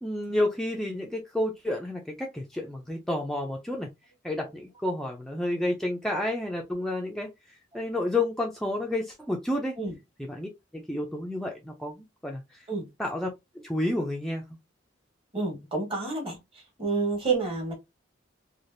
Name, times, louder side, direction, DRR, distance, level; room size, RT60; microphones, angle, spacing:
voice 1, 0.0-3.9 4.2-7.3 7.7-9.7 10.3-12.7 13.0-13.3 13.6-14.4, left 1 dB, ahead, 0.4 m, -30 dB
voice 2, 15.3-16.4 16.8-17.7, right 3 dB, 30° right, 1.3 m, -28 dB
3.2 x 2.4 x 2.5 m
head